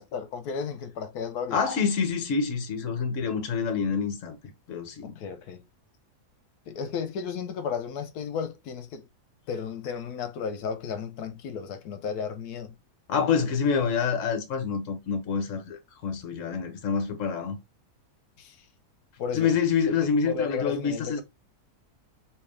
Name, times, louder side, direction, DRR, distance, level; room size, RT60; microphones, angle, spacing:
voice 1, 0.0-1.6 5.0-5.6 6.7-9.1 9.5-12.8 18.4-18.6 19.2-19.6 19.8-19.9 20.2-21.2, left 6 dB, 80° left, 1.2 m, -33 dB
voice 2, 1.5-4.4 4.7-5.1 13.1-17.6 19.3-21.2, left 6 dB, 60° left, 1.2 m, -27 dB
3.4 x 2.9 x 3.2 m
omnidirectional pair, 1.6 m